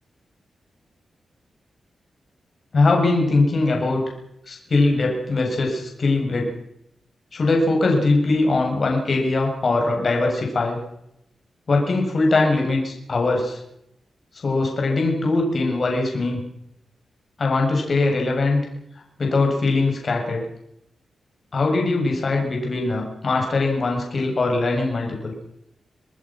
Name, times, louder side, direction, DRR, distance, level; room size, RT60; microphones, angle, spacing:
voice 1, 2.7-4.0 4.5-6.5 7.3-10.8 11.7-13.6 14.4-16.4 17.4-18.6 19.2-20.5 21.5-25.3, left 3 dB, 45° left, 1 dB, 7.3 m, -21 dB
27.0 x 19.5 x 6.2 m, 0.80 s
wide cardioid pair, 115°, 0 cm